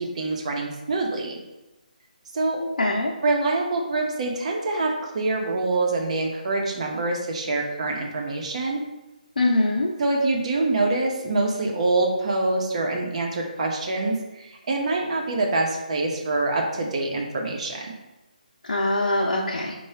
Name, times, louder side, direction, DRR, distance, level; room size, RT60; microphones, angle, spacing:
voice 1, 0.0-1.4 2.3-2.6 3.2-8.8 10.0-17.9, right 2 dB, 50° right, 1 dB, 0.8 m, -25 dB
voice 2, 2.6-3.1 9.4-9.9 18.6-19.8, left 2 dB, 75° left, -3 dB, 0.6 m, -23 dB
4.6 x 2.3 x 4.3 m, 1.0 s
figure-of-eight pair, 155°, 5 cm